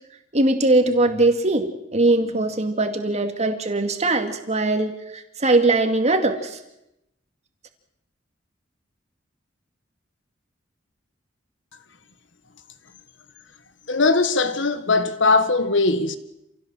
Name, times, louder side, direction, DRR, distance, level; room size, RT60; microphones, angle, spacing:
voice 1, 0.3-1.7 1.9-6.6, right 2 dB, 35° right, 2.4 m, -21 dB
voice 2, 13.9-16.2, left 3 dB, 75° left, 1.6 m, -20 dB
27.5 x 16.5 x 7.6 m
head